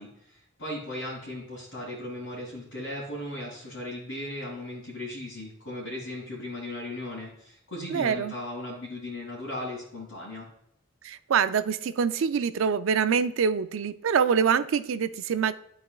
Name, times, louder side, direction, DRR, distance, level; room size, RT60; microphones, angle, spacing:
voice 1, 0.0-10.5, left 1 dB, 65° left, -7 dB, 2.3 m, -37 dB
voice 2, 7.9-8.3 11.0-15.5, right 6 dB, 75° right, 12 dB, 0.4 m, -25 dB
11.5 x 4.2 x 2.3 m, 0.74 s
head